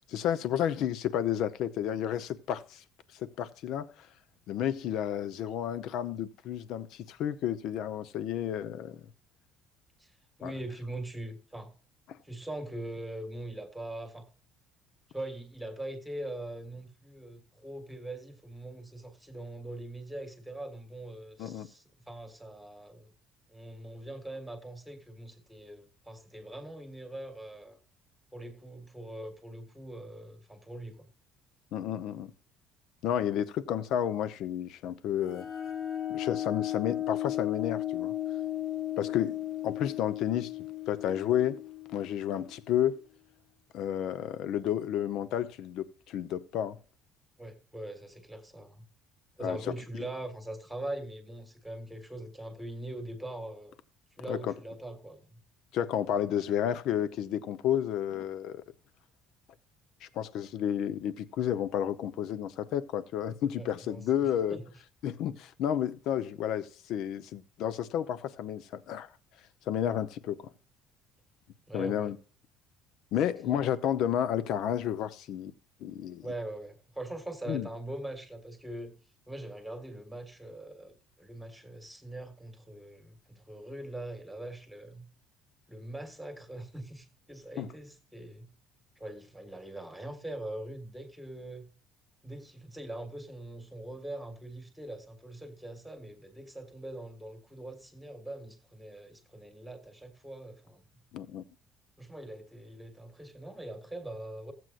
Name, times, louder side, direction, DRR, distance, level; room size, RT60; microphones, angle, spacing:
voice 1, 0.1-2.8 3.2-3.9 4.5-9.0 10.4-10.5 21.4-21.7 31.7-32.3 33.0-35.5 36.1-38.1 39.0-40.5 40.9-41.6 41.9-43.0 43.7-46.8 49.4-49.7 54.3-54.5 55.7-58.6 60.0-64.6 65.0-69.1 69.7-70.4 71.7-72.2 73.1-75.5 75.8-76.3 77.5-77.7 87.6-87.7 101.1-101.4, left 10 dB, 55° left, 0.7 m, -31 dB
voice 2, 10.4-11.7 12.2-14.3 15.1-23.1 23.5-27.8 28.3-31.1 47.4-48.8 49.4-53.8 54.2-55.4 63.5-64.0 64.5-64.6 71.7-72.1 73.4-73.6 76.2-78.9 79.3-85.1 85.7-88.5 89.0-91.7 92.2-100.8 102.0-104.5, right 1 dB, ahead, 1.5 m, -42 dB
sound 1, 35.3-42.7, left 12 dB, 35° left, 1.1 m, -35 dB
16.0 x 7.7 x 2.4 m
cardioid pair, 170°, 0 cm